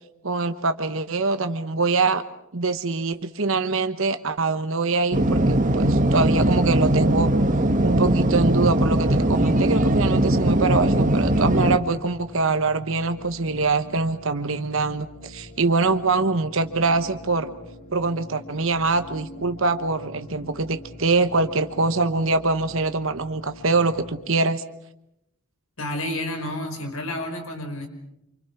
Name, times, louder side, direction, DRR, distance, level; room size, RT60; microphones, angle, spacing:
voice 1, 0.2-2.2 2.5-7.3 7.8-17.5 17.9-24.6, right 3 dB, 60° right, 9 dB, 1.1 m, -24 dB
sound 1, 5.1-11.8, right 1 dB, 35° right, 1.4 m, -20 dB
sound 2, 5.6-24.2, left 1 dB, 50° left, 6.0 m, -44 dB
voice 2, 25.8-27.9, left 1 dB, 70° left, 5 dB, 5.1 m, -30 dB
27.5 x 26.0 x 6.0 m, 0.82 s
head